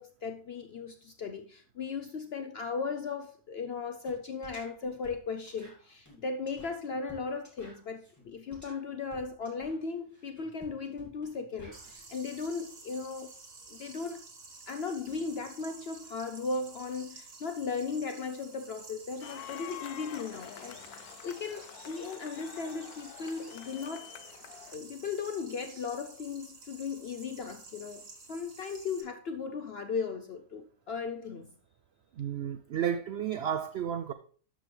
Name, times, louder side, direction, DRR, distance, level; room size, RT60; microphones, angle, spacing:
voice 1, 0.0-13.3 13.7-14.2 14.7-24.1 24.7-31.5, left 5 dB, 65° left, 0.6 m, -37 dB
sound 1, 4.0-4.2 4.4-12.0, left 1 dB, 10° left, 2.6 m, -54 dB
sound 2, 11.7-29.0, right 3 dB, 60° right, 2.1 m, -51 dB
sound 3, 19.2-24.7, left 11 dB, 80° left, 1.1 m, -47 dB
voice 2, 32.2-34.1, right 9 dB, 75° right, 0.5 m, -32 dB
12.5 x 5.1 x 3.2 m
omnidirectional pair, 1.6 m